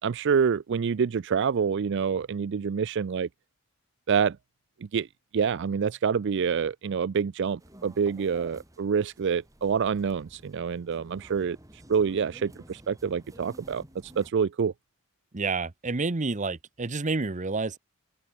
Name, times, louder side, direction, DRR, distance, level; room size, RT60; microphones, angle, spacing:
voice 1, 0.0-3.3 4.1-4.4 4.8-5.1 5.3-14.7, right 6 dB, 55° right, 0.4 m, -27 dB
sound 1, 7.6-14.3, right 1 dB, 15° right, 2.6 m, -52 dB
voice 2, 15.3-17.8, right 3 dB, 35° right, 0.8 m, -29 dB
open air
head